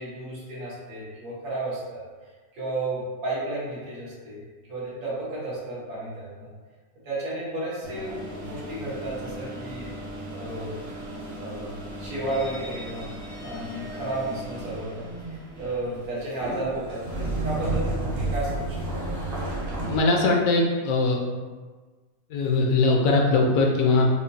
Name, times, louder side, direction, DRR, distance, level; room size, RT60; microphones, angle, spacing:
voice 1, 0.0-2.0 2.5-4.4 4.7-6.5 7.0-9.9 10.3-10.8 11.4-11.7 12.0-13.1 13.4-19.0, right 2 dB, 80° right, -8 dB, 1.6 m, -33 dB
sound 1, 7.8-20.0, right 2 dB, 55° right, 0.7 m, -33 dB
voice 2, 19.9-21.2 22.3-24.1, left 3 dB, 70° left, 0 dB, 0.9 m, -21 dB
5.0 x 2.2 x 2.7 m, 1.4 s
omnidirectional pair, 1.6 m